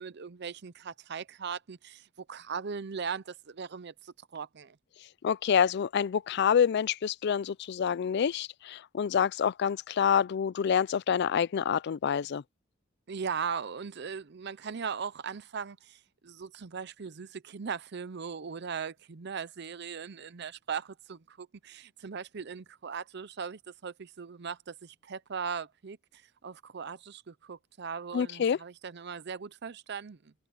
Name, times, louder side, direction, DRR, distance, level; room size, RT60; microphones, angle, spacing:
voice 1, 0.0-4.8 13.1-26.0 26.4-30.3, right 6 dB, 60° right, 0.6 m, -39 dB
voice 2, 5.2-12.4 28.1-28.6, left 7 dB, 60° left, 0.4 m, -27 dB
head